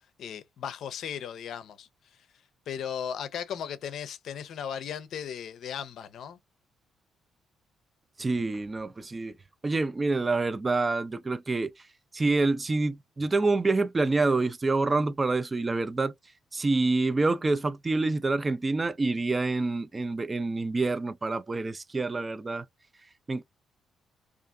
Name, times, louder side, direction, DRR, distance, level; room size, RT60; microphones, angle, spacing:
voice 1, 0.2-1.9 2.7-6.4, left 8 dB, 70° left, 0.5 m, -36 dB
voice 2, 8.2-9.3 9.6-11.7 12.1-16.1 16.5-22.6 23.3-23.4, right 3 dB, 25° right, 0.3 m, -27 dB
2.5 x 2.4 x 2.3 m
cardioid pair, 90°, 0 cm